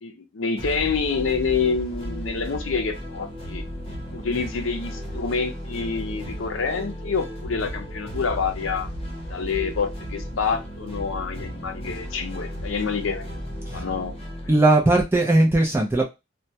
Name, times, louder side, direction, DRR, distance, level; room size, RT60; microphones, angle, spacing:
voice 1, 0.0-3.6 4.1-8.9 9.3-13.3 13.7-14.2, left 5 dB, 75° left, 6 dB, 0.6 m, -27 dB
sound 1, 0.6-14.5, equal, 30° left, 0.7 m, -34 dB
voice 2, 14.5-16.1, right 2 dB, 10° right, 0 dB, 0.4 m, -18 dB
2.2 x 2.1 x 2.7 m, 0.23 s
head